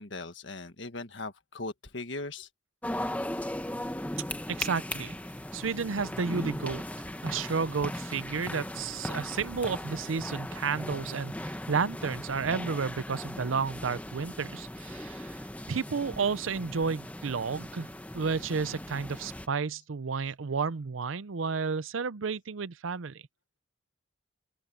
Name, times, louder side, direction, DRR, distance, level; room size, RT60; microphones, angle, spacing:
voice 1, 0.0-2.5, left 2 dB, 65° left, 1.7 m, -39 dB
sound 1, 2.8-19.5, left 1 dB, 5° left, 0.8 m, -38 dB
voice 2, 4.5-5.1 5.5-6.8 7.2-15.4 15.7-17.9 18.1-23.2, right 5 dB, 80° right, 0.6 m, -32 dB
open air
head